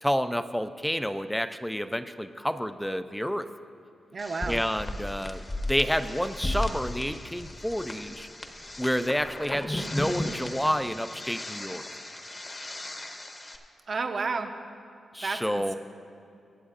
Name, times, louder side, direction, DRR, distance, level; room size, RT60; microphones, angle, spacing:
voice 1, 0.0-3.5 4.5-8.3 8.8-11.8 15.1-15.8, equal, 5° left, 11 dB, 0.3 m, -29 dB
voice 2, 4.1-4.6 13.9-14.5 15.2-15.8, right 4 dB, 45° right, 5 dB, 0.7 m, -31 dB
sound 1, 4.2-13.6, left 1 dB, 25° left, 0.8 m, -36 dB
23.5 x 7.9 x 2.5 m, 2.6 s
wide cardioid pair, 125°, 0 cm